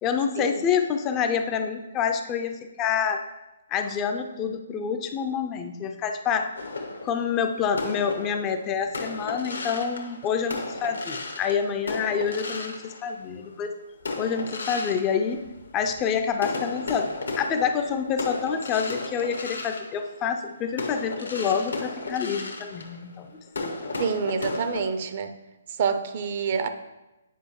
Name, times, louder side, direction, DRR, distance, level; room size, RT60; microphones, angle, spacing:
voice 1, 0.0-3.2 3.7-6.5 7.0-13.7 14.2-15.4 15.7-23.3 23.6-23.8, left 7 dB, 25° left, 6 dB, 0.4 m, -27 dB
sound 1, 6.6-13.5 14.0-16.0 16.4-24.9, left 3 dB, 75° left, 1.1 m, -35 dB
voice 2, 24.0-25.3 25.7-26.7, right 6 dB, 45° right, 9 dB, 0.5 m, -27 dB
9.1 x 5.0 x 3.1 m, 1.0 s
figure-of-eight pair, 135°, 0 cm